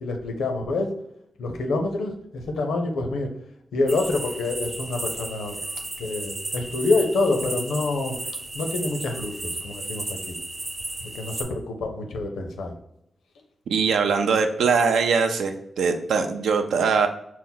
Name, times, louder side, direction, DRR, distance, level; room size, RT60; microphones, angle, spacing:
voice 1, 0.0-0.9 1.4-3.3 3.7-5.6 6.0-8.2 8.5-10.4 11.0-12.7, left 2 dB, 90° left, 4 dB, 0.6 m, -27 dB
sound 1, 3.9-11.4, right 2 dB, 50° right, 0.7 m, -34 dB
voice 2, 13.7-17.1, right 5 dB, 85° right, 6 dB, 0.4 m, -22 dB
4.3 x 2.1 x 3.8 m, 0.77 s
cardioid pair, 55°, 0 cm